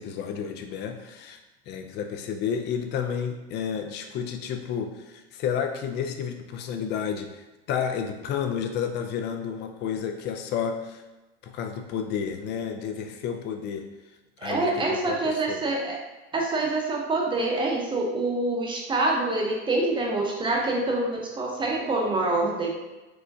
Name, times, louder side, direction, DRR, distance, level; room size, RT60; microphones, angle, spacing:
voice 1, 0.0-1.4 1.7-11.0 11.4-13.9 14.4-15.7, left 7 dB, 35° left, 6 dB, 0.4 m, -31 dB
voice 2, 14.4-16.0 16.3-22.7, right 2 dB, 15° right, -1 dB, 0.7 m, -26 dB
4.7 x 2.2 x 2.6 m, 1.1 s
supercardioid pair, 115°, 33 cm